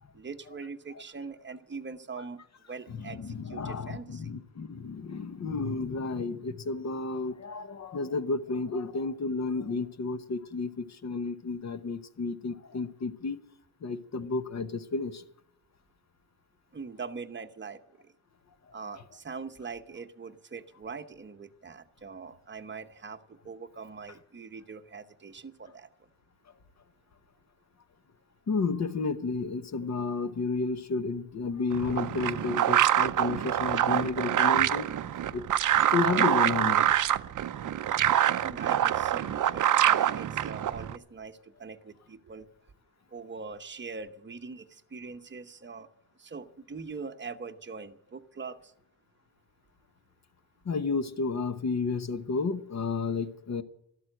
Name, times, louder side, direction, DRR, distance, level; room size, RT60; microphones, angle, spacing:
voice 1, 0.1-2.4 2.7-4.2 16.7-18.1 18.7-25.9 38.4-42.5 43.1-45.9 46.2-48.7, right 5 dB, 25° right, 0.9 m, -42 dB
voice 2, 2.9-13.4 13.8-15.2 28.5-34.9 35.3-35.4 35.9-36.8 50.6-53.6, left 4 dB, 40° left, 1.0 m, -32 dB
sound 1, 31.7-41.0, right 11 dB, 45° right, 0.6 m, -25 dB
13.0 x 13.0 x 7.7 m
cardioid pair, 140°, 42 cm